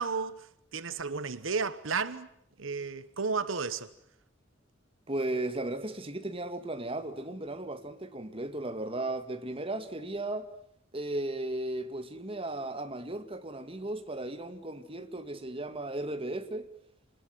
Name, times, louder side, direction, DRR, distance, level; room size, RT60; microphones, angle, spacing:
voice 1, 0.0-2.3 2.6-3.9, right 5 dB, 80° right, 1.2 m, -33 dB
voice 2, 5.1-10.5 10.9-16.7, right 2 dB, 30° right, 2.0 m, -35 dB
28.5 x 21.0 x 9.5 m
head